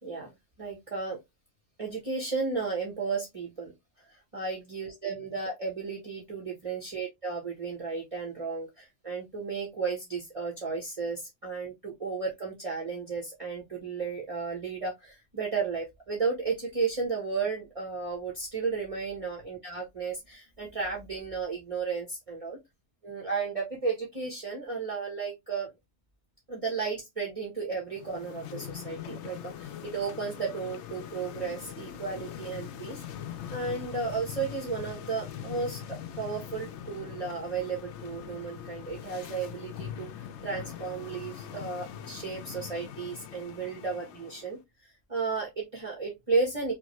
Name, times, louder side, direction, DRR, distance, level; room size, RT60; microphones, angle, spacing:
voice 1, 0.6-1.2 1.8-3.7 4.1-22.6 23.0-25.7 26.5-33.0 33.5-44.6 45.1-46.7, right 4 dB, 30° right, -2 dB, 1.2 m, -33 dB
sound 1, 27.9-44.5, left 9 dB, 90° left, 0.9 m, -42 dB
5.8 x 2.3 x 3.0 m, 0.19 s
omnidirectional pair, 1.2 m